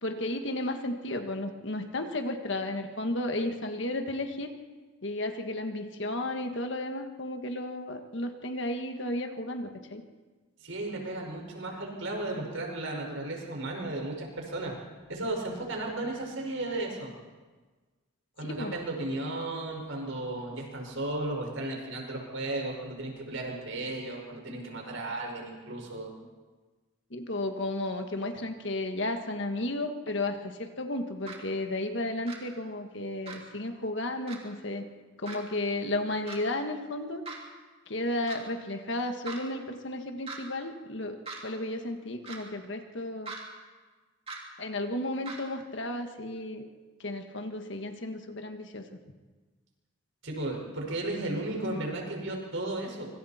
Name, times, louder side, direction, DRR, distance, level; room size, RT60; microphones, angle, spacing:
voice 1, 0.0-4.5 5.0-10.0 18.4-18.7 27.1-34.9 35.2-37.2 37.9-41.2 41.4-43.3 44.6-46.6 47.0-48.8, left 1 dB, 55° left, 5 dB, 1.7 m, -33 dB
voice 2, 10.6-14.7 15.1-17.1 18.4-26.1 50.2-53.1, right 2 dB, 65° right, 1 dB, 5.5 m, -34 dB
sound 1, 31.3-31.4 32.3-32.4 33.3-33.4 34.3-34.4 35.2-35.4 36.3-36.4 37.2-37.4 38.3-38.4 39.2-39.4 40.3-40.4 41.2-41.4 42.2-42.4 43.2-43.4 44.3-44.4 45.2-45.4, right 4 dB, 25° right, 3.2 m, -40 dB
26.0 x 25.0 x 4.4 m, 1.3 s
head